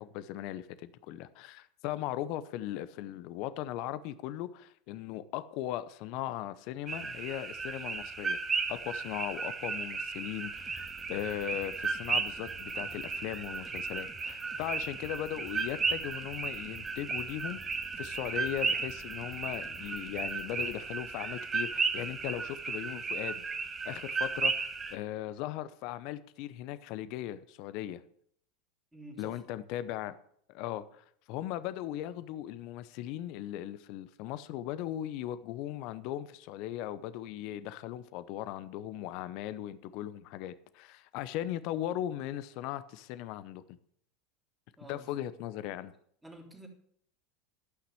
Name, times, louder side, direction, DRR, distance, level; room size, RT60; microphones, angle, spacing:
voice 1, 0.0-8.4 8.7-10.8 11.1-17.6 18.0-23.4 23.8-28.0 29.2-30.2 30.5-43.6 44.9-45.9, left 13 dB, 55° left, 14 dB, 0.7 m, -38 dB
sound 1, 6.9-24.9, right 4 dB, 25° right, 1.5 m, -35 dB
sound 2, 10.6-20.8, equal, 10° left, 1.8 m, -53 dB
voice 2, 28.9-29.7 44.8-45.1 46.2-46.7, right 1 dB, 10° right, 1 dB, 3.2 m, -50 dB
12.0 x 5.8 x 7.7 m, 0.66 s
hypercardioid pair, 85°, 0 cm